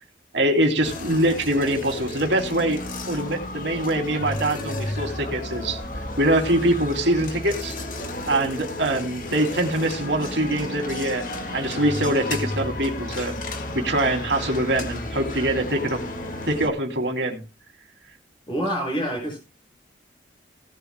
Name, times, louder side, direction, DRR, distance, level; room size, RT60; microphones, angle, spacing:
voice 1, 0.3-2.8 3.1-5.8 6.2-7.7 8.3-11.2 11.5-13.3 13.7-16.0 16.5-17.4, right 1 dB, 85° right, 4 dB, 2.8 m, -23 dB
sound 1, 0.8-16.7, left 1 dB, 45° left, 1.7 m, -32 dB
voice 2, 18.5-19.4, equal, 25° left, 1 dB, 6.5 m, -26 dB
17.5 x 11.5 x 2.2 m, 0.29 s
head